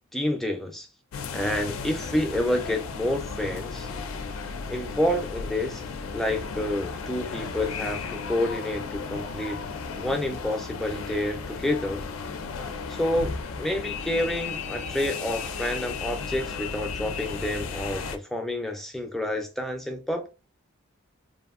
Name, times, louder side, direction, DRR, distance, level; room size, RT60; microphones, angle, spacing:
voice 1, 0.1-0.9 1.3-3.9 4.7-5.8 6.1-9.6 10.0-12.0 12.9-20.3, left 1 dB, ahead, 0.4 m, -29 dB
sound 1, 1.1-18.2, left 5 dB, 80° left, 0.4 m, -34 dB
2.7 x 2.5 x 2.4 m
head